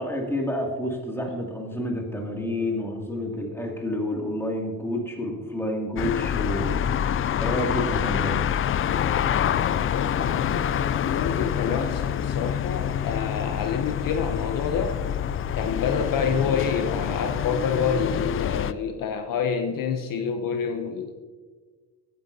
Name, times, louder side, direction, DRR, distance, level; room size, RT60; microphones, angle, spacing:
voice 1, 0.0-7.1 7.4-8.5, left 1 dB, 5° left, -1 dB, 2.5 m, -29 dB
sound 1, 6.0-18.7, left 9 dB, 35° left, 0.4 m, -26 dB
voice 2, 9.9-15.0 15.6-21.2, left 6 dB, 55° left, 6 dB, 0.9 m, -28 dB
15.5 x 9.4 x 2.8 m, 1.4 s
cardioid pair, 90°, 38 cm